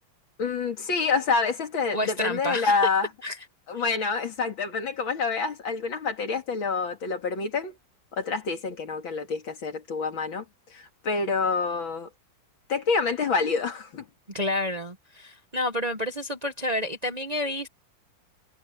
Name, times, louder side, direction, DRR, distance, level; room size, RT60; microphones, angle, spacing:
voice 1, 0.4-3.1 3.7-7.8 8.1-10.4 10.7-12.1 12.7-14.1, left 4 dB, 80° left, 3.0 m, -27 dB
voice 2, 1.9-2.7 3.2-3.4 3.8-3.9 14.3-17.7, left 1 dB, 25° right, 1.0 m, -29 dB
omnidirectional pair, 2.1 m